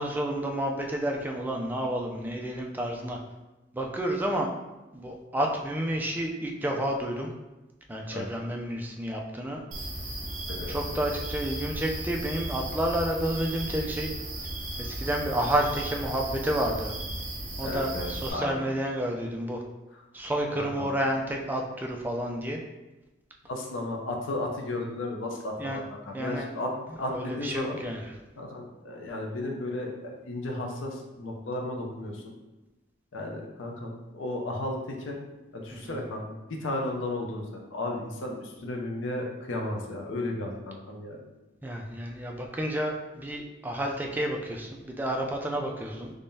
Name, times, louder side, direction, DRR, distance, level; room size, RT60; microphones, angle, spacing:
voice 1, 0.0-3.2 3.7-4.5 4.9-7.3 7.9-9.6 10.7-14.1 14.8-16.9 17.6-19.6 20.1-22.6 25.6-25.8 26.1-26.5 27.1-28.0 35.7-35.9 41.6-46.1, right 1 dB, 10° right, 1 dB, 0.3 m, -30 dB
sound 1, 9.7-18.3, right 1 dB, 45° right, 0.7 m, -35 dB
voice 2, 17.6-18.7 19.9-20.0 20.6-20.9 23.5-27.8 28.4-32.3 33.1-35.2 35.5-41.2, left 1 dB, 85° left, 1 dB, 0.6 m, -34 dB
3.6 x 3.3 x 2.7 m, 1.1 s
head